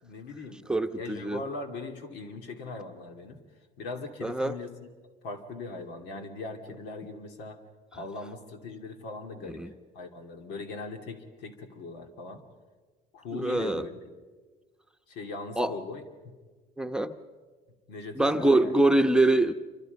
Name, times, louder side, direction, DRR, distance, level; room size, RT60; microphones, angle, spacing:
voice 1, 0.0-0.6 0.9-3.4 3.8-4.9 5.2-7.6 7.9-9.6 9.9-12.4 13.1-14.0 15.1-16.0 17.9-18.7, left 3 dB, 90° left, 2.7 m, -40 dB
voice 2, 0.7-1.4 4.2-4.6 9.4-9.7 13.3-13.9 15.6-15.8 16.8-17.1 18.1-19.5, right 2 dB, 5° right, 0.9 m, -24 dB
27.5 x 25.0 x 5.3 m
cardioid pair, 110°, 17 cm